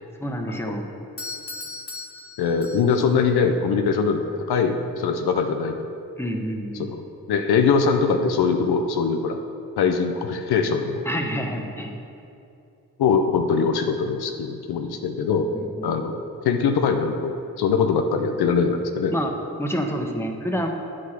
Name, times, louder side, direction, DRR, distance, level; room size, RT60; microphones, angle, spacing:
voice 1, 0.2-0.9 6.2-6.9 11.0-11.9 15.5-16.0 19.1-19.3 19.6-20.7, equal, 5° left, 2 dB, 1.2 m, -28 dB
Doorbell, 1.2-3.2, left 3 dB, 35° left, 1.3 m, -37 dB
voice 2, 2.4-4.2 4.5-5.9 6.8-7.0 7.3-9.4 9.8-11.0 13.0-15.5 15.8-19.1, left 5 dB, 75° left, 4 dB, 0.7 m, -22 dB
8.1 x 4.9 x 5.9 m, 2.6 s
supercardioid pair, 40°, 38 cm